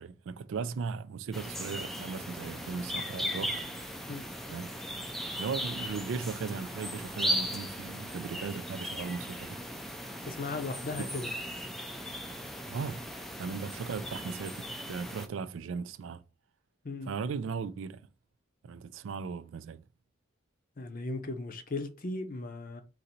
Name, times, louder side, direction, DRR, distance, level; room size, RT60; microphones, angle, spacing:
voice 1, 0.0-3.6 4.5-4.7 5.4-9.6 12.7-13.0 13.4-16.2 17.1-18.0 18.6-19.8, right 5 dB, 75° right, 0.3 m, -37 dB
sound 1, 1.3-15.3, equal, ahead, 0.4 m, -37 dB
voice 2, 10.2-11.3 16.8-17.1 20.8-22.8, left 2 dB, 45° left, 0.6 m, -37 dB
3.9 x 2.6 x 4.2 m
head